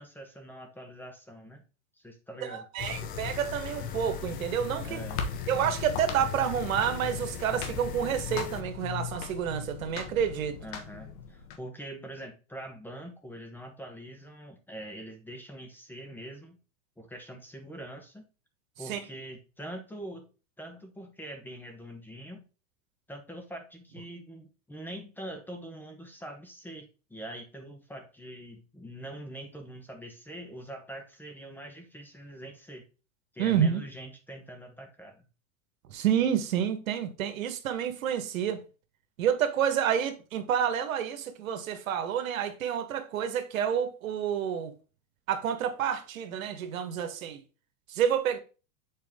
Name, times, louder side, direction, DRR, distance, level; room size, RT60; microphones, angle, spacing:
voice 1, 0.0-1.6 2.0-2.6 4.8-5.2 10.6-16.6 17.0-18.3 18.8-20.3 20.6-22.5 23.1-32.9 33.3-35.3, right 1 dB, 5° left, 0.9 m, -43 dB
voice 2, 2.4-5.0 5.5-10.6 18.9-19.0 33.4-33.8 35.9-38.6 39.2-44.7 45.3-47.4 47.9-48.4, right 9 dB, 85° right, 1.4 m, -29 dB
sound 1, 2.8-8.6, left 9 dB, 20° left, 0.5 m, -39 dB
sound 2, 4.1-11.6, left 7 dB, 60° left, 1.4 m, -39 dB
7.5 x 4.5 x 3.5 m
supercardioid pair, 145°, 40 cm